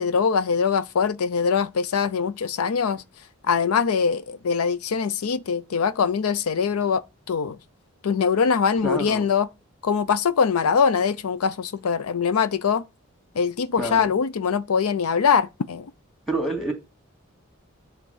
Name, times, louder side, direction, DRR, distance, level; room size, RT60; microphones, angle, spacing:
voice 1, 0.0-3.0 3.4-7.6 8.0-9.5 9.8-12.8 13.4-15.9, left 6 dB, 85° left, 0.5 m, -23 dB
voice 2, 8.8-9.2 13.8-14.1 16.3-16.7, right 1 dB, ahead, 2.1 m, -27 dB
9.9 x 3.6 x 7.0 m
head